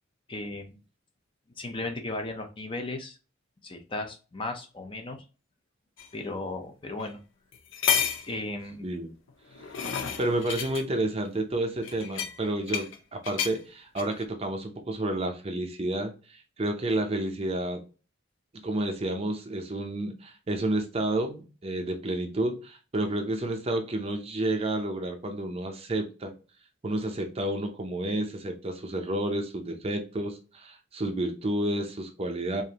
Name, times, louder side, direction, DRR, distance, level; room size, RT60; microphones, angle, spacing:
voice 1, 0.3-0.8 1.6-3.2 3.6-5.2 6.1-7.2 8.3-8.9, left 2 dB, 25° left, 0.6 m, -35 dB
sound 1, 6.0-6.1 7.0-7.1 7.5-8.3 9.3-10.8 11.8-13.0 13.2-13.6 14.0-14.2, left 7 dB, 70° left, 0.6 m, -30 dB
voice 2, 9.8-17.8 18.5-26.3 26.8-32.6, right 1 dB, 30° right, 0.6 m, -30 dB
4.9 x 2.6 x 2.8 m
head